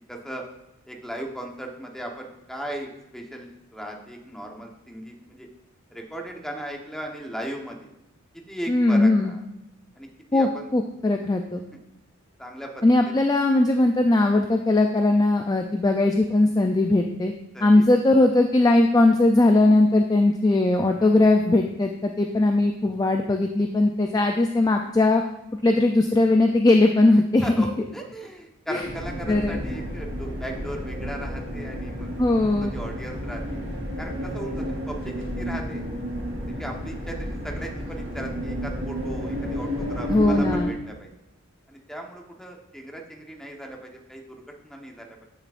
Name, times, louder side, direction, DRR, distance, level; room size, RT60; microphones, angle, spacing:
voice 1, 0.1-0.4 0.9-5.5 5.9-7.9 8.5-9.4 10.0-10.7 11.7-11.8 12.4-12.8 17.5-17.8 21.0-21.2 27.4-32.1 32.4-33.4 34.0-35.8 36.6-41.1 41.7-45.2, right 1 dB, ahead, 1 dB, 1.0 m, -37 dB
voice 2, 8.7-9.3 10.3-11.6 12.8-17.3 17.6-25.2 25.6-27.5 28.7-28.8 29.3-29.6 32.2-32.7 40.1-40.7, left 2 dB, 20° left, 4 dB, 0.3 m, -19 dB
sound 1, 28.8-40.6, equal, 60° right, 3.2 m, -31 dB
9.9 x 7.1 x 2.5 m, 0.85 s
head